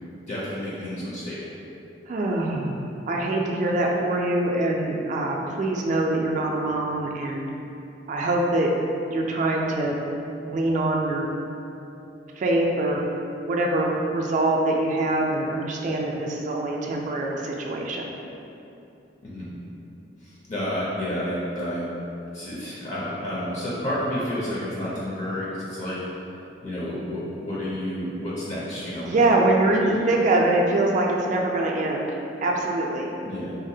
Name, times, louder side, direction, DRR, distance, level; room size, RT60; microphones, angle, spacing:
voice 1, 0.2-1.4 19.2-19.5 20.2-21.8 22.3-26.0 26.6-29.2 29.8-30.0 33.2-33.5, left 1 dB, 40° left, -7 dB, 0.5 m, -30 dB
voice 2, 2.1-7.4 8.1-8.7 9.1-10.0 10.4-11.3 12.4-13.0 13.5-18.1 29.1-33.1, right 2 dB, 45° right, -1 dB, 0.3 m, -24 dB
3.9 x 2.1 x 2.7 m, 2.8 s
head